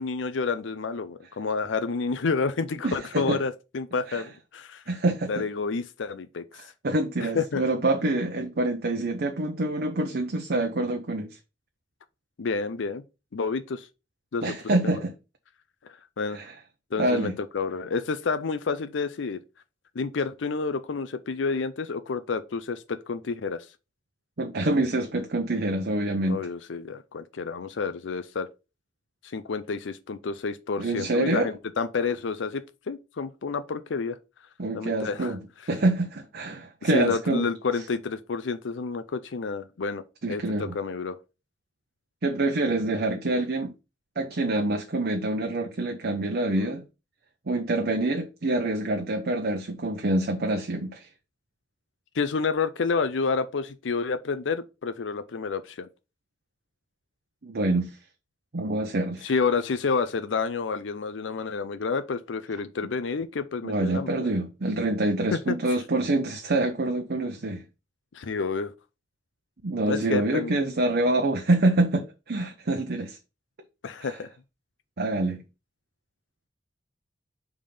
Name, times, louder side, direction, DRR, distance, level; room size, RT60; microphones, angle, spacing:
voice 1, 0.0-4.8 5.3-6.4 7.2-7.6 12.4-13.0 13.3-13.9 14.3-14.6 14.8-15.0 16.2-16.4 16.9-19.4 20.0-23.7 26.3-28.5 29.2-34.2 34.7-35.3 36.8-40.0 40.3-41.2 52.1-55.9 59.2-64.3 65.3-65.6 68.1-68.7 69.9-70.5 73.8-74.3, left 4 dB, 80° left, 0.5 m, -29 dB
voice 2, 2.8-3.4 4.1-4.2 4.9-5.4 6.8-11.4 14.4-15.1 16.3-16.5 17.0-17.3 24.4-26.4 30.8-31.5 34.6-35.4 35.7-37.4 40.2-40.7 42.2-43.7 44.2-46.8 47.5-51.1 57.4-57.9 58.5-59.3 63.6-67.6 69.6-73.2 74.0-74.2 75.0-75.4, right 2 dB, 55° right, 0.8 m, -26 dB
5.1 x 3.6 x 5.4 m
head